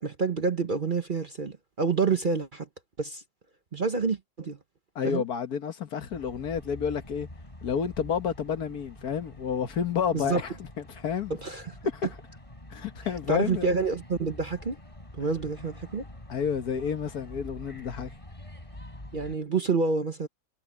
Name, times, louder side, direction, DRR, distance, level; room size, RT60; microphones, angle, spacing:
voice 1, 0.0-2.7 3.0-3.2 3.7-4.6 5.0-5.2 10.1-10.4 11.4-11.8 13.3-14.8 15.1-16.0 19.1-20.3, right 4 dB, 40° right, 0.9 m, -28 dB
voice 2, 5.0-7.3 7.6-11.4 11.9-12.1 12.7-13.7 16.3-18.1, left 7 dB, 70° left, 1.8 m, -30 dB
sound 1, 6.1-19.4, left 1 dB, 20° left, 3.9 m, -46 dB
omnidirectional pair, 1.7 m